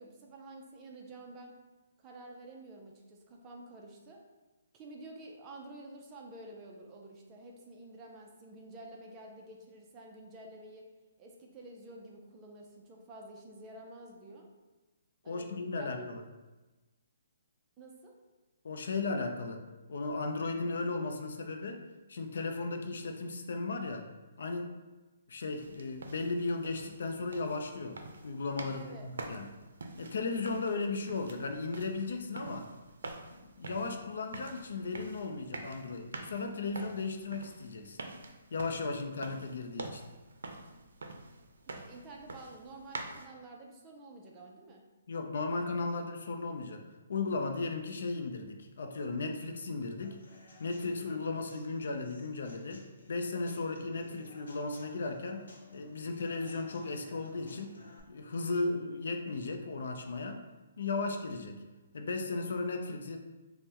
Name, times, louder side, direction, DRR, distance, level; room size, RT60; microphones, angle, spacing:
voice 1, 0.0-1.5 2.0-4.2 4.7-10.9 11.2-14.5 15.2-16.1 17.8-18.1 28.7-29.1 41.7-44.8, right 2 dB, 20° right, 0 dB, 0.4 m, -50 dB
voice 2, 15.3-16.2 18.6-19.6 19.9-21.8 22.1-24.1 24.4-24.8 25.3-28.0 28.2-29.5 30.0-32.7 33.4-38.0 38.5-40.0 45.1-46.8 47.1-50.2 50.6-57.8 58.1-60.4 60.8-61.6 61.9-63.2, left 3 dB, 70° left, 5 dB, 0.5 m, -36 dB
sound 1, 25.6-43.3, right 3 dB, 80° right, 0.5 m, -47 dB
Human voice / Acoustic guitar / Drum, 50.0-58.0, left 2 dB, 85° left, 0.9 m, -56 dB
5.4 x 2.1 x 2.8 m, 1.1 s
hypercardioid pair, 165°, 0 cm